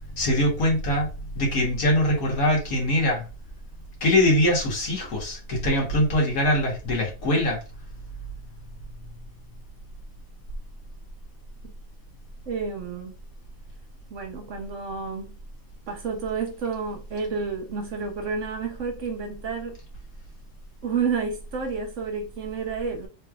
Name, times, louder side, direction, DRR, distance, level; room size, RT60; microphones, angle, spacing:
voice 1, 0.2-3.2 4.0-7.6, left 1 dB, 85° left, 1.9 m, -23 dB
voice 2, 12.5-13.1 14.1-15.4 15.9-19.8 20.8-23.1, right 5 dB, 65° right, 1.1 m, -30 dB
3.8 x 3.2 x 2.4 m
omnidirectional pair, 1.4 m